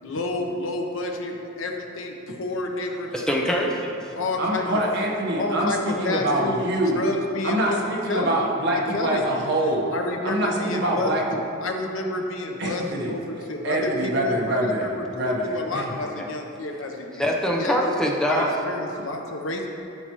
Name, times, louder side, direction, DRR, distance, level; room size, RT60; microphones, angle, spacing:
voice 1, 0.0-3.4 4.1-4.6 5.3-6.7 6.9-8.4 8.7-9.4 9.9-11.1 11.6-17.3 17.6-17.8 18.2-19.7, left 2 dB, 80° left, 2 dB, 0.9 m, -30 dB
voice 2, 3.1-4.1 16.2-16.3 17.2-18.5, equal, 5° left, -1 dB, 0.8 m, -24 dB
voice 3, 4.4-7.1 7.4-9.9 10.2-11.2 12.6-13.2 13.6-14.9 15.1-15.8 18.4-18.5, right 1 dB, 55° right, -2 dB, 1.3 m, -25 dB
14.0 x 5.7 x 3.1 m, 2.7 s
head